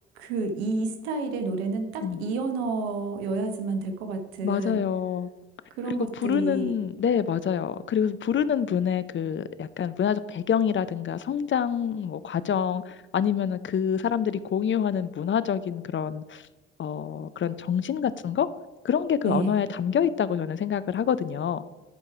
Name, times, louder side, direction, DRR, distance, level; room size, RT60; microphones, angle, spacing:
voice 1, 0.2-4.8 5.8-6.7 19.2-19.6, right 3 dB, 85° right, 6 dB, 0.9 m, -30 dB
voice 2, 4.4-5.3 6.0-16.4 16.8-18.5 18.8-21.6, left 8 dB, 40° left, 15 dB, 0.5 m, -26 dB
10.5 x 4.7 x 4.7 m, 1.2 s
hypercardioid pair, 45°, 31 cm